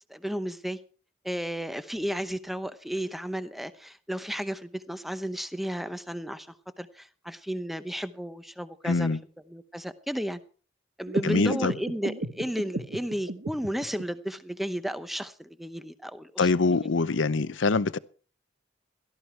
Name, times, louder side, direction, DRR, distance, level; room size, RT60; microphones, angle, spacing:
voice 1, 0.1-0.8 1.2-9.2 9.5-10.4 11.0-16.5 16.8-16.9, equal, ahead, 0.8 m, -33 dB
voice 2, 8.8-9.2 11.2-11.7 16.4-18.0, left 3 dB, 85° left, 0.7 m, -24 dB
sound 1, 11.1-14.0, right 2 dB, 65° right, 1.3 m, -34 dB
17.5 x 13.0 x 4.5 m
head